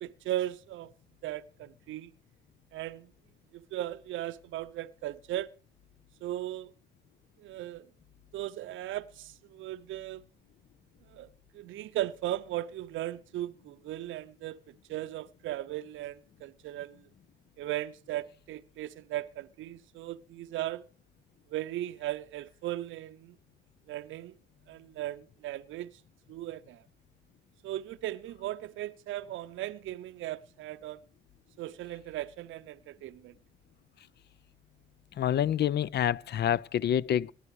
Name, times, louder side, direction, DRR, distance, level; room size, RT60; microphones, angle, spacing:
voice 1, 0.0-0.9 1.2-2.1 2.7-3.1 3.5-5.5 6.2-6.7 7.4-7.9 8.3-10.2 11.1-11.3 11.5-14.6 14.9-17.1 17.6-20.9 21.5-23.4 23.9-24.3 24.7-26.0 26.3-26.8 27.6-31.0 31.6-33.3, right 14 dB, 75° right, 0.6 m, -37 dB
voice 2, 35.2-37.3, left 10 dB, 60° left, 0.6 m, -27 dB
18.0 x 11.5 x 4.7 m
cardioid pair, 90°, 20 cm